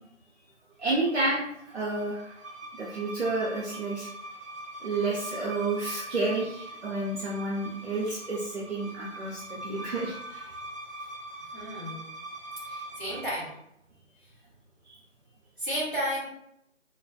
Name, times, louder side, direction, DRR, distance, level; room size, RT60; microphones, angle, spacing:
voice 1, 0.8-1.4 1.7-2.4 2.8-4.1 4.8-10.5 14.8-15.0, right 2 dB, 60° right, -6 dB, 0.7 m, -30 dB
sound 1, 0.9-13.5, right 2 dB, 80° right, 1.1 m, -43 dB
voice 2, 11.5-12.1 12.7-13.5 15.6-16.3, equal, 45° right, -7 dB, 1.2 m, -32 dB
3.1 x 2.2 x 2.3 m, 0.76 s
figure-of-eight pair, 175°, 38 cm